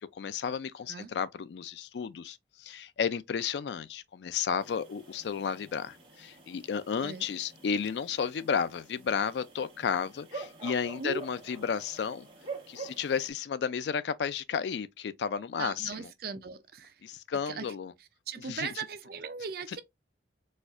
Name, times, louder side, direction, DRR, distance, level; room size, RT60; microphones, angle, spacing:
voice 1, 0.1-12.3 12.7-16.1 17.0-17.9 18.4-18.8 19.7-19.8, left 6 dB, 70° left, 0.3 m, -33 dB
sound 1, 4.6-13.3, right 4 dB, 30° right, 1.2 m, -47 dB
voice 2, 15.6-16.9 17.5-17.7 18.3-19.8, right 5 dB, 55° right, 0.5 m, -38 dB
4.2 x 2.4 x 2.4 m
head